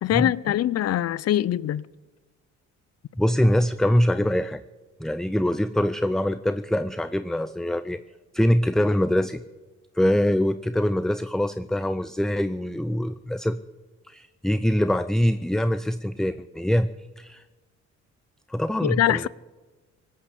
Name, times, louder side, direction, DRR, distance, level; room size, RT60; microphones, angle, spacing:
voice 1, 0.0-1.8 18.8-19.3, left 12 dB, 55° left, 0.5 m, -23 dB
voice 2, 3.2-4.6 5.0-8.0 8.3-9.4 10.0-13.6 14.1-16.9 17.2-17.4 18.5-19.3, left 1 dB, ahead, 0.4 m, -23 dB
18.5 x 8.6 x 8.1 m
cardioid pair, 90°, 30 cm